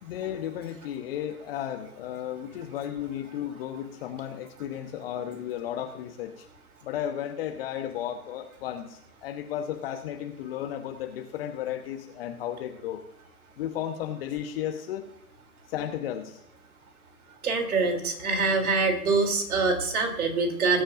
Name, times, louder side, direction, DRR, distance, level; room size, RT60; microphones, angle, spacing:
voice 1, 0.0-6.5 6.8-13.0 13.6-15.0 15.7-16.4, left 10 dB, 40° left, 5 dB, 1.1 m, -34 dB
voice 2, 17.4-20.8, right 4 dB, 65° right, 5 dB, 3.3 m, -25 dB
19.5 x 10.0 x 2.6 m, 0.74 s
figure-of-eight pair, 120°, 46 cm